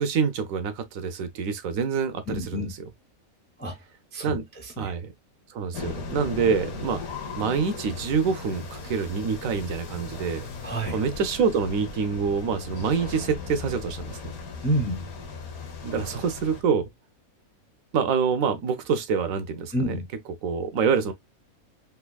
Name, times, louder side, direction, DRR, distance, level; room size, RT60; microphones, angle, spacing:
voice 1, 0.0-2.6 4.2-4.4 4.8-5.1 5.5-7.0 7.3-10.5 10.9-14.3 15.8-16.9 17.9-20.0 20.4-21.1, right 6 dB, 70° right, 1.0 m, -26 dB
voice 2, 2.3-2.7 3.6-3.8 4.1-4.9 10.6-11.0 14.6-15.1 15.9-16.0 19.7-20.1, equal, 15° left, 0.4 m, -29 dB
sound 1, 5.7-16.6, left 4 dB, 85° left, 1.4 m, -37 dB
3.4 x 2.7 x 2.2 m
omnidirectional pair, 1.5 m